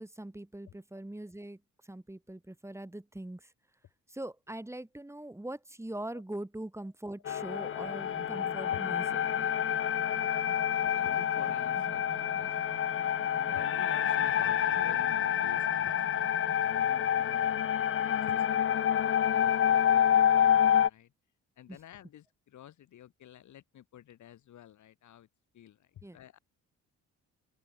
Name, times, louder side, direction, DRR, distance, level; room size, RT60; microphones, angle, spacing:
voice 1, 0.0-3.5 4.1-9.0 21.7-21.8 26.0-26.2, right 1 dB, 10° right, 6.3 m, -42 dB
sound 1, 7.3-20.9, left 9 dB, 45° left, 0.7 m, -28 dB
sound 2, 7.8-16.7, right 5 dB, 40° right, 5.4 m, -50 dB
voice 2, 10.8-21.1 21.6-25.3 25.5-26.4, left 11 dB, 70° left, 7.4 m, -51 dB
open air
cardioid pair, 90°, 30 cm